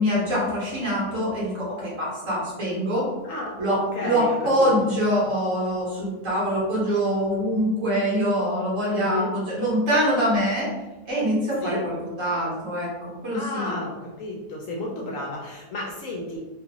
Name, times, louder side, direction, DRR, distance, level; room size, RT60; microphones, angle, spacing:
voice 1, 0.0-3.1 3.6-10.7 11.0-13.7, equal, 55° right, -6 dB, 1.4 m, -24 dB
voice 2, 3.2-4.9 8.9-9.3 11.6-11.8 13.3-16.4, left 2 dB, 70° left, -2 dB, 0.8 m, -32 dB
3.0 x 2.4 x 2.9 m, 1.1 s
omnidirectional pair, 1.7 m